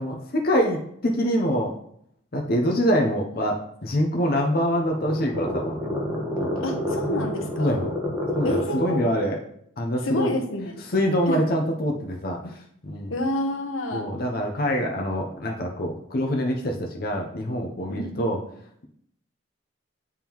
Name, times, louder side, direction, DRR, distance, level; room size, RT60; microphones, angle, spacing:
voice 1, 0.0-1.7 2.3-5.9 6.4-6.5 7.6-7.9 8.3-9.4 9.8-10.3 10.9-13.1 13.9-18.4, equal, 45° left, 1 dB, 0.6 m, -25 dB
sound 1, 4.4-9.3, left 1 dB, 15° right, 1.0 m, -29 dB
voice 2, 6.6-7.8 8.4-9.1 10.0-10.8 11.3-11.4 13.1-14.1 17.9-18.3, left 1 dB, 80° left, 3 dB, 1.0 m, -29 dB
8.9 x 3.6 x 3.0 m, 0.69 s
head